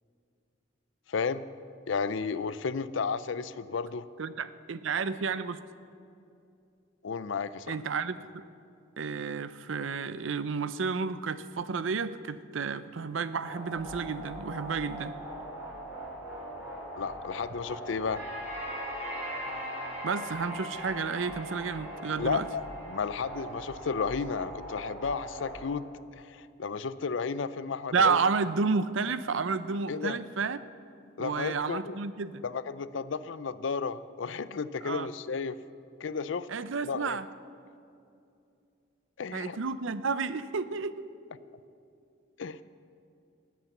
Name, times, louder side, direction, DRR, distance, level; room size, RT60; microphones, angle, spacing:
voice 1, 1.1-1.4 1.9-4.1 7.0-7.8 17.0-18.2 22.2-25.8 26.1-28.2 29.9-30.2 31.2-32.0 32.4-35.6 36.0-36.5 36.8-37.2 39.2-39.6 42.4-42.6, left 5 dB, 70° left, 15 dB, 0.5 m, -33 dB
voice 2, 4.2-5.6 7.7-8.5 9.0-15.2 20.0-22.5 27.9-30.6 31.2-32.4 34.8-35.1 36.5-37.3 39.3-41.1, right 5 dB, 80° right, 14 dB, 0.6 m, -31 dB
sound 1, 13.4-25.6, right 1 dB, 10° right, 4.6 m, -40 dB
19.0 x 8.5 x 7.2 m, 2.6 s
head